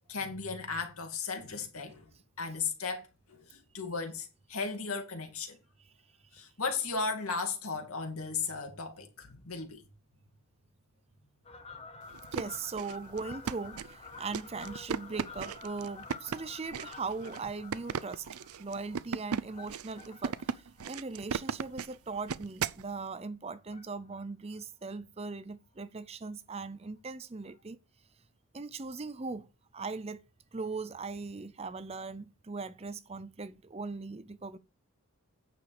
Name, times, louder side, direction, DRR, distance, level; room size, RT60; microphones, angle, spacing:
voice 1, 0.1-2.0 2.4-5.6 6.3-9.9, left 4 dB, 80° left, 2.4 m, -36 dB
Fowl, 11.4-22.2 22.7-22.9 23.6-24.2 24.5-24.6 24.8-24.9 25.2-25.3 25.7-25.8 26.8-26.9 27.5-27.6, left 4 dB, 25° left, 1.0 m, -50 dB
sound 1, 12.1-22.9, right 6 dB, 85° right, 0.5 m, -37 dB
voice 2, 12.3-18.3 18.6-27.8 28.5-29.5 29.7-30.2 30.5-34.6, right 4 dB, 25° right, 0.5 m, -39 dB
9.2 x 7.0 x 4.9 m
head